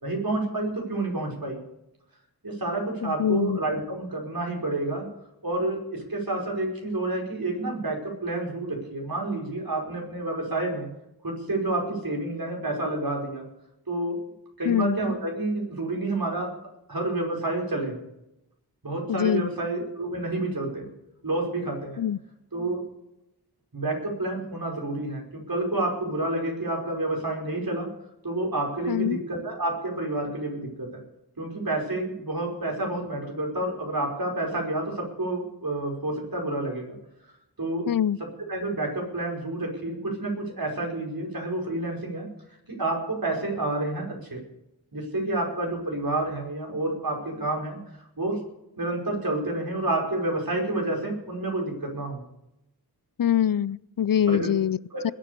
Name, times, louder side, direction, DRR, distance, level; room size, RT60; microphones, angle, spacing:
voice 1, 0.0-1.6 2.4-5.1 5.4-10.9 11.2-13.4 13.9-14.2 14.6-16.5 16.9-17.9 18.8-20.9 21.2-22.0 22.5-22.8 23.7-27.9 28.2-31.0 31.4-37.0 37.6-37.9 38.2-42.3 42.7-44.4 44.9-47.8 48.2-48.4 48.8-52.2 54.3-54.5 54.9-55.1, right 2 dB, 65° right, 5.3 m, -29 dB
voice 2, 3.0-3.6 14.7-15.0 19.1-19.5 22.0-22.2 28.9-29.2 37.9-38.2 53.2-54.8 55.0-55.1, left 9 dB, 60° left, 0.5 m, -24 dB
21.0 x 7.6 x 6.7 m
wide cardioid pair, 65°, 38 cm